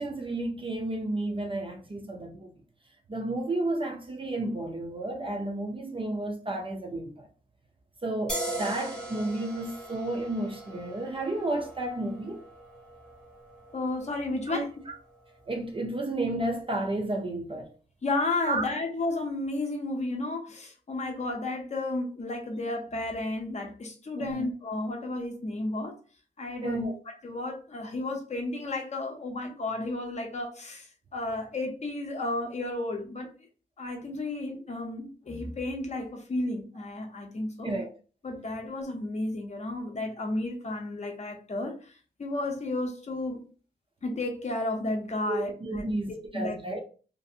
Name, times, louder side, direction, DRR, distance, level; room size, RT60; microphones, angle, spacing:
voice 1, 0.0-2.5 3.1-7.3 8.0-12.4 14.5-14.9 15.5-17.7 18.4-18.6 24.2-24.5 26.6-27.0 37.6-37.9 45.3-46.8, right 2 dB, 30° right, 0.4 m, -32 dB
sound 1, 8.3-15.6, right 1 dB, 5° left, 0.8 m, -40 dB
voice 2, 13.7-14.7 18.0-26.0 26.4-26.8 27.2-33.3 33.8-37.7 38.2-41.9 42.2-43.4 44.0-46.8, left 2 dB, 35° left, 0.6 m, -33 dB
2.6 x 2.4 x 2.6 m
wide cardioid pair, 170°, 19 cm